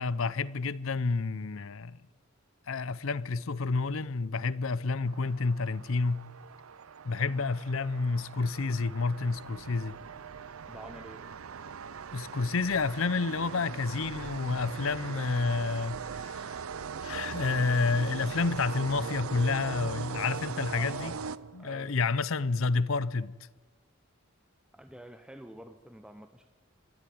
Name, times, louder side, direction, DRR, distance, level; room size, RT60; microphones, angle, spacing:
voice 1, 0.0-2.0 2.7-6.3 7.0-10.0 12.1-16.6 17.0-21.1 21.5-23.3, left 4 dB, 70° left, 0.7 m, -29 dB
sound 1, 5.1-21.9, right 6 dB, 80° right, 0.6 m, -40 dB
voice 2, 10.7-11.3 20.7-21.3 21.6-22.0 24.7-26.5, equal, 5° right, 0.7 m, -48 dB
25.5 x 12.0 x 9.3 m
head